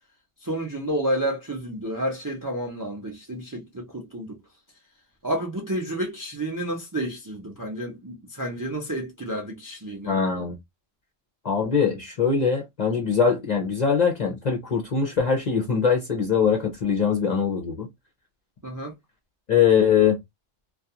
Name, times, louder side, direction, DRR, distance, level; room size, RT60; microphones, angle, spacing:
voice 1, 0.4-4.4 5.2-10.2 18.6-19.0, right 1 dB, 25° right, 0.4 m, -30 dB
voice 2, 10.1-10.6 11.4-17.9 19.5-20.2, left 6 dB, 50° left, 0.5 m, -22 dB
2.3 x 2.3 x 2.7 m
omnidirectional pair, 1.2 m